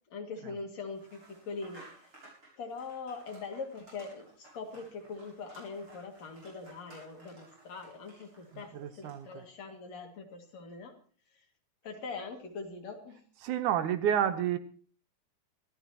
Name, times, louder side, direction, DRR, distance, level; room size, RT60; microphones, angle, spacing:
voice 1, 0.1-1.8 2.6-10.9 11.8-13.2, left 4 dB, 60° left, 3.4 m, -42 dB
sound 1, 0.9-9.4, right 2 dB, 40° right, 8.5 m, -57 dB
voice 2, 8.7-9.3 13.4-14.6, right 9 dB, 80° right, 2.3 m, -29 dB
24.0 x 14.5 x 2.9 m
omnidirectional pair, 3.6 m